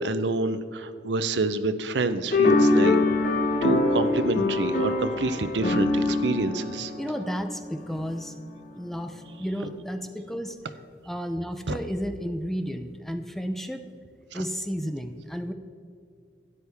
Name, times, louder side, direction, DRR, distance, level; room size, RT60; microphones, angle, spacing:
voice 1, 0.0-3.0 3.6-6.9 11.7-11.8 14.3-14.4, right 3 dB, 80° right, 11 dB, 0.6 m, -28 dB
sound 1, 2.3-7.9, left 2 dB, 50° left, 1.1 m, -24 dB
voice 2, 7.0-8.3 8.7-10.6 11.0-13.8 14.3-15.5, equal, ahead, 7 dB, 0.5 m, -32 dB
12.5 x 9.6 x 3.4 m, 2.3 s
head